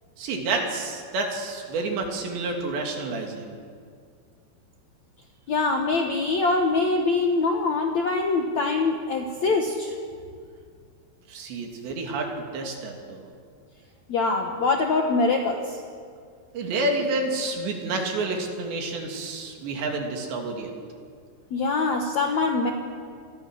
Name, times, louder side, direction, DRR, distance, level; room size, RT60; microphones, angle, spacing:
voice 1, 0.2-3.6 11.3-13.3 16.5-20.7, right 2 dB, 70° right, 2 dB, 4.8 m, -29 dB
voice 2, 5.5-10.0 14.1-15.8 21.5-22.7, left 3 dB, 65° left, 2 dB, 1.8 m, -24 dB
28.0 x 22.0 x 6.4 m, 2.1 s
omnidirectional pair, 5.2 m